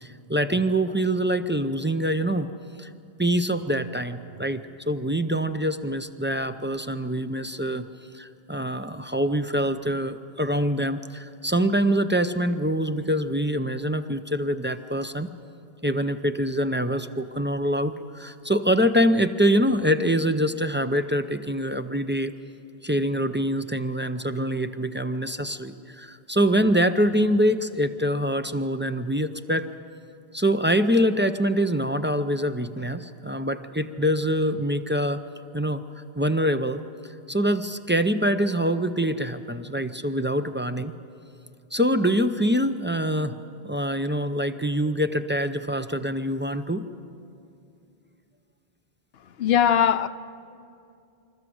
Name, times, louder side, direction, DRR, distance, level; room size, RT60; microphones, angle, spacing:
voice 1, 0.0-2.5 2.8-2.9 3.2-7.9 8.1-15.3 15.8-22.3 22.8-29.7 30.3-35.2 35.5-35.8 36.2-36.8 37.3-40.9 41.7-43.3 43.6-46.8, equal, 15° right, 0.4 m, -25 dB
voice 2, 49.2-50.1, left 9 dB, 75° left, 0.9 m, -20 dB
26.5 x 13.5 x 7.8 m
omnidirectional pair, 1.0 m